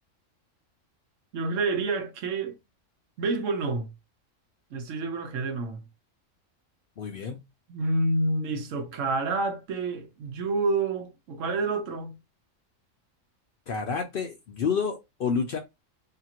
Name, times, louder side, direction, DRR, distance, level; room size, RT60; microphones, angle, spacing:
voice 1, 1.3-2.6 3.2-3.9 4.7-5.8 7.7-12.2, right 3 dB, 80° right, 1.0 m, -28 dB
voice 2, 7.0-7.4 13.7-15.6, left 5 dB, 60° left, 0.6 m, -29 dB
2.8 x 2.4 x 2.8 m
omnidirectional pair, 1.3 m